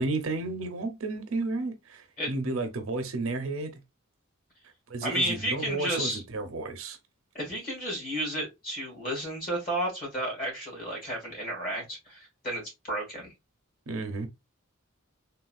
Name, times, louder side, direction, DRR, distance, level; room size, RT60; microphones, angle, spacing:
voice 1, 0.0-3.8 4.9-7.0 13.9-14.3, right 3 dB, 80° right, 0.6 m, -32 dB
voice 2, 5.0-6.2 7.3-12.6 12.9-13.3, right 1 dB, 40° left, 1.7 m, -32 dB
3.6 x 2.3 x 2.3 m
head